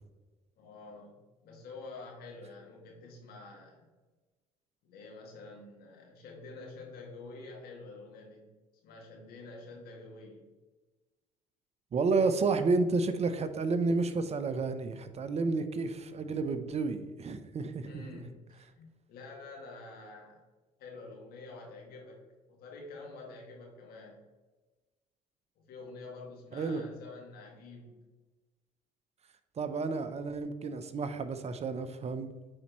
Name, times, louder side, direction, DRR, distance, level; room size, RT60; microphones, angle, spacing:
voice 1, 0.6-3.8 4.8-8.5 8.8-10.5 17.8-20.4 20.8-22.2 22.5-24.3 25.6-28.0, left 3 dB, 70° left, 0 dB, 2.1 m, -48 dB
voice 2, 11.9-18.2 26.5-26.8 29.6-32.3, right 3 dB, 40° right, 10 dB, 0.7 m, -31 dB
8.7 x 4.2 x 3.0 m, 1.2 s
hypercardioid pair, 65°, 17 cm